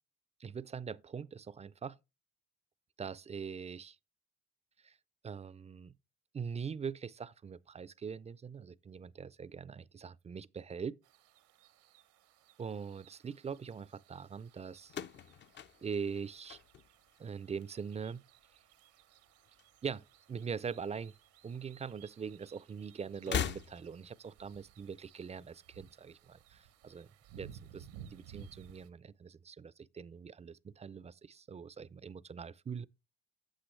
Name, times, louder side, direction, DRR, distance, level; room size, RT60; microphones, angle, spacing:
voice 1, 0.4-2.0 3.0-4.0 4.8-5.0 5.2-5.9 6.3-11.0 12.6-15.0 15.8-16.6 17.2-18.2 19.8-21.1 21.4-27.1 27.3-32.8, right 6 dB, 25° right, 0.4 m, -42 dB
sound 1, 11.0-28.9, right 9 dB, 85° right, 1.1 m, -58 dB
sound 2, 14.8-17.2 17.5-18.1 19.1-20.2 20.4-20.5 21.7-21.8 23.1-24.2, left 8 dB, 40° left, 0.5 m, -40 dB
8.9 x 7.5 x 3.2 m
supercardioid pair, 70°, 29 cm